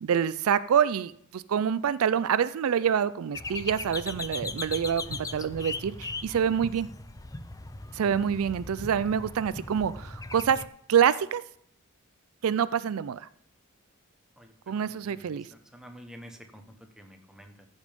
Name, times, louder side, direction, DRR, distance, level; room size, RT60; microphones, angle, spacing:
voice 1, 0.0-6.9 7.9-10.6 10.9-11.4 12.4-13.3 14.7-15.5, right 8 dB, 70° right, 0.4 m, -26 dB
sound 1, 3.3-10.7, left 3 dB, 15° left, 0.5 m, -38 dB
voice 2, 14.8-17.7, equal, 5° right, 1.1 m, -50 dB
14.0 x 5.4 x 5.2 m
head